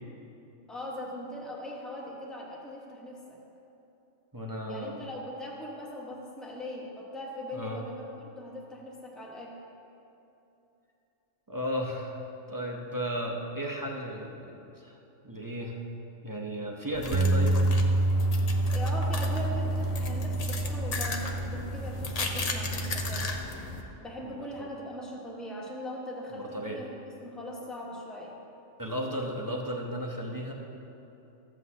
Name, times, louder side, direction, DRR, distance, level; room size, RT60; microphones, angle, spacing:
voice 1, 0.7-3.4 4.6-9.6 18.7-23.3 24.0-28.4, left 1 dB, ahead, -3 dB, 1.0 m, -40 dB
voice 2, 4.3-5.0 7.5-7.8 11.5-12.2 12.5-15.0 15.2-15.8 16.2-17.6 24.2-24.7 26.3-26.8 28.8-30.5, equal, 20° right, -1 dB, 0.6 m, -34 dB
sound 1, 16.9-23.8, left 3 dB, 40° left, 0.6 m, -36 dB
Bass guitar, 17.1-23.4, right 2 dB, 65° right, 1.1 m, -28 dB
14.0 x 7.9 x 2.8 m, 2.9 s
omnidirectional pair, 1.3 m